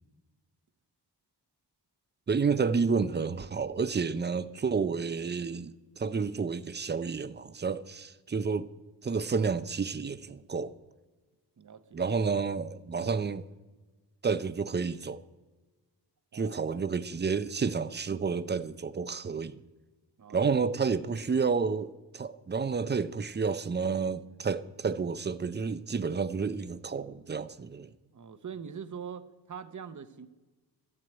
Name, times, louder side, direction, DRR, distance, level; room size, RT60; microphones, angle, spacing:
voice 1, 2.3-8.7 9.0-10.8 11.9-13.5 14.2-15.2 16.3-19.6 20.3-27.9, right 5 dB, 25° right, 0.4 m, -30 dB
voice 2, 11.6-12.0 16.3-16.8 20.2-20.7 28.1-30.3, right 7 dB, 45° right, 0.8 m, -43 dB
12.5 x 7.6 x 8.9 m
wide cardioid pair, 165°, 42 cm